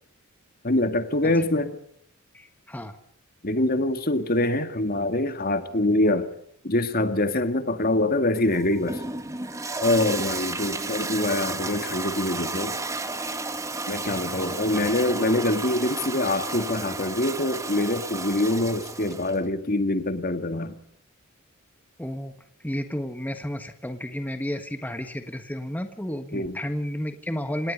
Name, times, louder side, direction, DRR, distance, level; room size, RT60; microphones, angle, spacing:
voice 1, 0.6-1.8 3.4-6.3 6.6-9.0 9.8-12.8 13.9-20.8 26.3-26.6, left 2 dB, 45° left, 9 dB, 2.0 m, -24 dB
voice 2, 2.3-3.0 22.0-22.3 22.6-27.7, equal, 10° left, 7 dB, 1.4 m, -32 dB
Toilet flush, 8.3-19.4, right 3 dB, 15° right, 1.6 m, -32 dB
27.0 x 20.0 x 5.4 m, 0.71 s
head